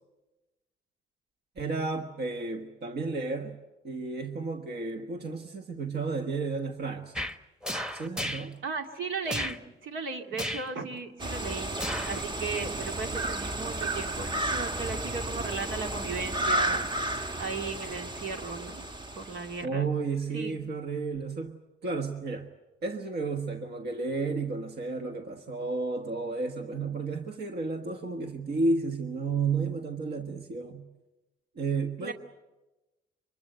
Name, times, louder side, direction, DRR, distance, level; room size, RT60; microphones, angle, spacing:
voice 1, 1.6-3.6 3.8-7.1 7.9-8.6 19.6-22.5 22.8-30.9 31.5-32.1, right 3 dB, 55° right, 6 dB, 1.5 m, -32 dB
sound 1, 7.2-7.4 7.6-8.5 9.3-9.6 10.4-10.7 11.8-12.2 12.6-12.7, left 1 dB, 5° right, 1.2 m, -33 dB
voice 2, 8.6-18.9 19.2-19.9 20.3-20.6 32.0-32.1, right 4 dB, 80° right, 4 dB, 2.4 m, -36 dB
sound 2, 11.2-19.6, right 1 dB, 25° right, 1.3 m, -32 dB
24.5 x 22.0 x 7.9 m, 1.1 s
cardioid pair, 90°, 20 cm